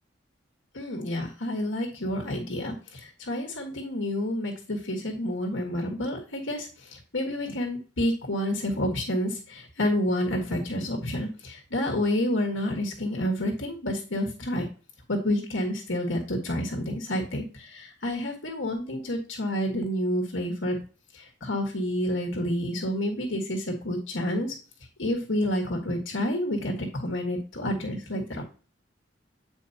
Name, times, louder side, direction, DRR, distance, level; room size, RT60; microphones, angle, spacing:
voice 1, 0.7-14.7 15.1-20.8 21.1-24.5 25.0-28.4, left 1 dB, 85° left, 1 dB, 1.5 m, -29 dB
8.4 x 4.5 x 2.8 m, 0.36 s
head